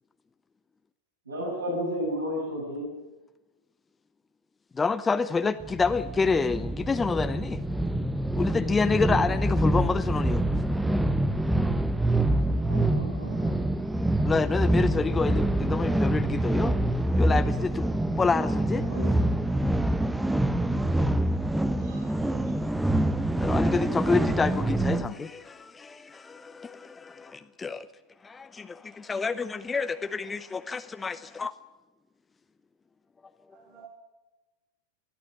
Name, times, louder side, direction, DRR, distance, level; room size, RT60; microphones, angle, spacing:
voice 1, 1.3-2.9 12.7-13.5 18.9-19.2, equal, 75° right, 6.8 m, -32 dB
voice 2, 4.7-7.6 8.4-10.4 14.2-16.8 17.2-17.9 18.2-18.8 23.4-27.9 28.2-31.5 33.5-33.6, left 4 dB, 15° left, 0.7 m, -28 dB
sound 1, 5.6-25.1, right 1 dB, 5° right, 1.0 m, -26 dB
voice 3, 21.8-22.5 24.1-24.3 33.5-33.9, right 5 dB, 45° right, 5.8 m, -50 dB
20.5 x 14.0 x 9.8 m
figure-of-eight pair, 90°, 0 cm